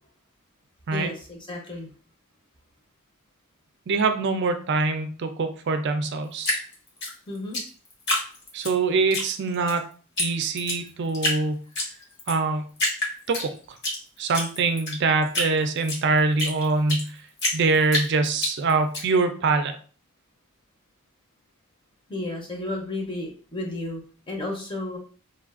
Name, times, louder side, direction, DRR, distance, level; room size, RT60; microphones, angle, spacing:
voice 1, 0.9-1.9 7.3-7.6 22.1-25.0, left 2 dB, 20° left, -1 dB, 0.7 m, -33 dB
voice 2, 3.9-6.6 8.5-9.8 10.2-11.6 12.3-12.7 13.3-13.5 14.2-17.2 17.5-19.7, right 3 dB, 50° right, 8 dB, 0.4 m, -24 dB
Drip, 6.4-8.7 9.1-9.8 10.2-10.3 10.6-11.4 11.8-12.4 12.8-14.0 14.3-17.1 17.4-19.0, left 1 dB, 50° left, 1.0 m, -27 dB
3.2 x 2.3 x 2.4 m, 0.40 s
head